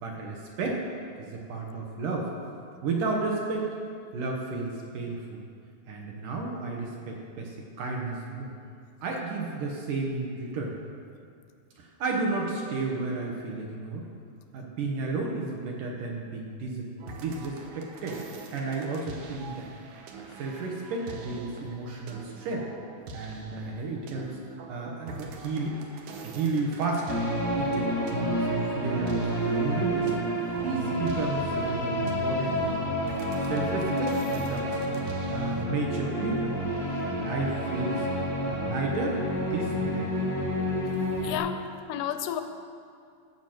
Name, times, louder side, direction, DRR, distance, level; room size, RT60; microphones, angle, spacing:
voice 1, 0.0-0.8 1.2-2.3 2.8-3.7 4.1-5.4 5.9-8.5 9.0-10.8 11.8-14.1 14.5-16.9 17.1-19.7 20.4-22.7 23.1-24.4 24.7-25.8 26.2-27.2 27.6-30.1 30.6-32.9 33.5-35.0 35.3-36.6 37.0-38.1 38.5-40.3, right 3 dB, 65° right, 0 dB, 2.1 m, -32 dB
sound 1, 17.0-35.7, right 4 dB, 90° right, 1.6 m, -44 dB
sound 2, 27.1-41.4, equal, 40° left, 0.6 m, -29 dB
voice 2, 41.2-41.6 41.9-42.4, left 10 dB, 80° left, 9 dB, 2.3 m, -30 dB
14.0 x 6.1 x 7.7 m, 2.4 s
omnidirectional pair, 4.9 m